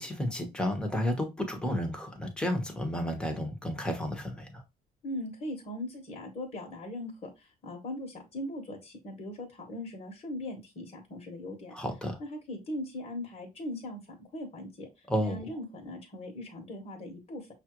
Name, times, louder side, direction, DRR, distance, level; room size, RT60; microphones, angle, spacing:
voice 1, 0.0-4.6 11.7-12.2 15.1-15.4, equal, 5° left, 1.1 m, -32 dB
voice 2, 5.0-11.8 12.2-14.0 14.3-17.5, left 1 dB, 40° left, 1.2 m, -39 dB
5.5 x 2.5 x 3.0 m
cardioid pair, 110°, 17 cm